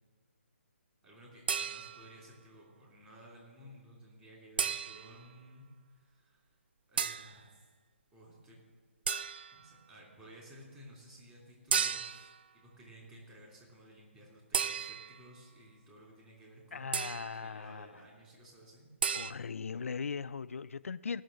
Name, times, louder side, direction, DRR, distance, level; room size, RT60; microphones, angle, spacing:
voice 1, 1.0-6.5 6.9-7.7 8.1-8.6 9.5-12.3 12.5-18.9, equal, 15° right, 3.2 m, -55 dB
sound 1, 1.5-2.2 4.6-5.2 7.0-7.4 9.1-9.6 11.7-12.4 14.5-15.3 16.9-17.4 19.0-19.3, right 7 dB, 45° right, 0.4 m, -34 dB
voice 2, 16.7-17.9 19.1-21.2, left 5 dB, 80° left, 0.3 m, -39 dB
17.0 x 6.4 x 7.7 m
hypercardioid pair, 155°, 7 cm